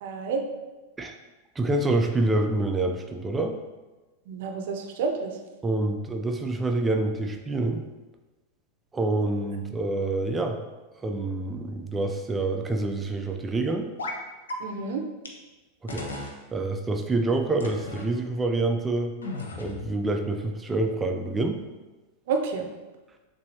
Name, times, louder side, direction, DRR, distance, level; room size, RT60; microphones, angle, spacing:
voice 1, 0.0-0.4 4.3-5.3 14.6-15.0 22.3-22.6, right 4 dB, 50° right, 3 dB, 0.6 m, -29 dB
voice 2, 1.6-3.5 5.6-7.8 8.9-10.6 11.0-13.9 15.8-19.1 19.6-21.6, right 2 dB, 15° right, 4 dB, 0.4 m, -27 dB
sound 1, 14.0-14.2 14.5-14.6 15.2-15.3 15.9-16.4 17.6-18.1 19.2-19.9, left 2 dB, 70° left, 0.7 m, -35 dB
6.7 x 2.7 x 2.8 m, 1.2 s
figure-of-eight pair, 90°, 0 cm